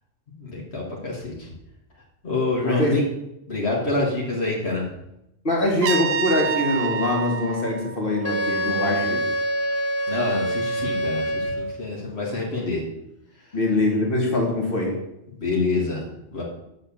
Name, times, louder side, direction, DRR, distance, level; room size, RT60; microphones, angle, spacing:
voice 1, 0.3-1.5 2.2-3.0 3.5-4.9 10.1-12.8 13.4-13.5 15.3-16.0 16.3-16.4, left 3 dB, 70° left, -3 dB, 2.1 m, -27 dB
voice 2, 2.6-3.0 5.4-9.3 13.5-15.0, left 1 dB, 55° left, 0 dB, 2.3 m, -23 dB
Trumpet, 5.8-8.7, right 6 dB, 65° right, 0.8 m, -28 dB
Wind instrument woodwind instrument, 8.2-11.8, right 1 dB, 25° left, 0.3 m, -25 dB
8.0 x 6.4 x 7.2 m, 0.84 s
omnidirectional pair, 1.1 m